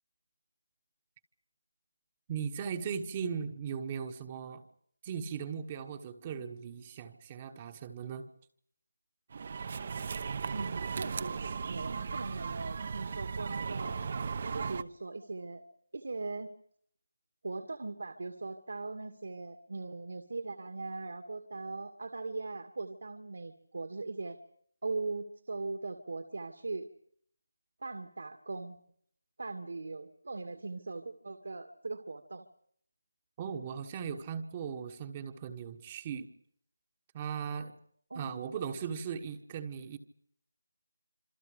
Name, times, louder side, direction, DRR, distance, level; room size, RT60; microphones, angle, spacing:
voice 1, 2.3-4.6 5.0-8.3 33.4-36.3 37.1-37.7 38.1-40.0, right 7 dB, 20° right, 6 dB, 1.3 m, -38 dB
sound 1, 9.3-14.8, right 5 dB, 35° right, 0.9 m, -36 dB
voice 2, 10.5-11.3 11.7-14.0 14.4-15.6 15.9-16.5 17.4-24.4 24.8-26.9 27.8-28.8 29.4-32.5 38.1-38.5, right 3 dB, 60° right, 7 dB, 2.1 m, -40 dB
27.0 x 26.5 x 5.1 m, 0.64 s
figure-of-eight pair, 170°, 0 cm